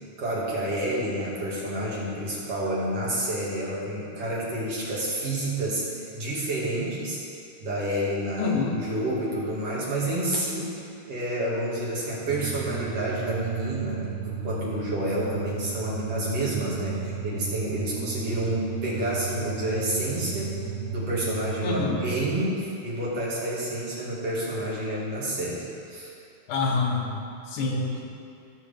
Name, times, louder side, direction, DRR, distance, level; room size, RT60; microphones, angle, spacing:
voice 1, 0.0-7.2 7.6-10.8 11.1-20.6 20.9-26.1, right 1 dB, 55° right, -7 dB, 2.9 m, -29 dB
voice 2, 8.4-8.8 21.6-22.0 26.5-27.2 27.5-28.1, left 3 dB, 80° left, -1 dB, 2.5 m, -26 dB
sound 1, 12.3-22.4, right 7 dB, 80° right, 1.5 m, -34 dB
18.0 x 6.4 x 3.4 m, 2.5 s
omnidirectional pair, 3.5 m